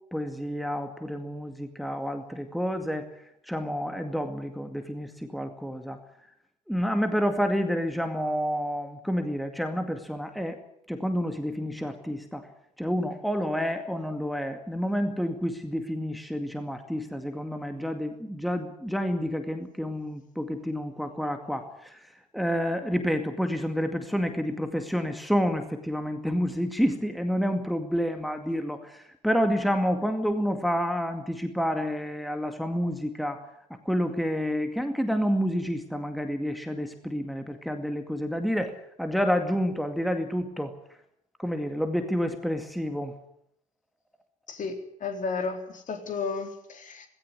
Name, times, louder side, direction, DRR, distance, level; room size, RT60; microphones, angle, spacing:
voice 1, 0.1-3.1 3.4-6.0 6.7-10.6 10.9-12.5 12.8-33.4 33.8-40.7 41.4-43.1, equal, ahead, 6 dB, 2.2 m, -29 dB
voice 2, 45.0-47.1, left 4 dB, 40° left, 5 dB, 3.9 m, -32 dB
18.0 x 17.5 x 9.8 m, 0.73 s
figure-of-eight pair, 50°, 19 cm